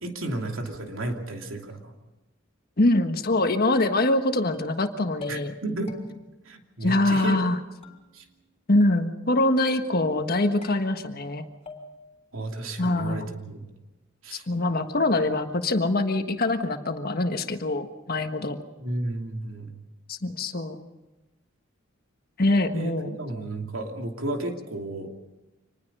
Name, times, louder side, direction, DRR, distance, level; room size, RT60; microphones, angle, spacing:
voice 1, 0.0-1.9 5.3-6.0 6.4-7.4 8.1-8.2 12.3-13.6 14.2-14.4 18.8-19.7 22.7-25.1, right 2 dB, 90° right, 3 dB, 2.8 m, -33 dB
voice 2, 2.8-5.5 6.8-7.6 8.7-11.5 12.8-13.2 14.3-18.6 20.1-20.8 22.4-23.1, left 2 dB, 50° left, 7 dB, 1.4 m, -24 dB
sound 1, 4.5-4.9 5.2-5.6 5.9-6.4 6.9-7.5 7.8-8.5 8.8-9.3 9.7-10.2 10.6-11.3 11.7-12.2, left 4 dB, 30° left, 3.4 m, -46 dB
26.0 x 20.5 x 5.5 m, 1.1 s
head